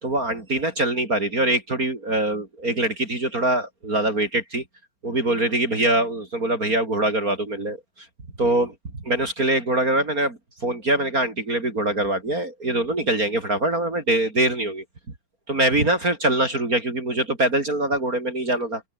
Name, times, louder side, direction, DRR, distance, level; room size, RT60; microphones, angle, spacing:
voice 1, 0.0-4.6 5.0-8.1 8.4-8.7 9.0-14.8 15.5-18.8, right 1 dB, 25° right, 3.6 m, -23 dB
open air
omnidirectional pair, 3.6 m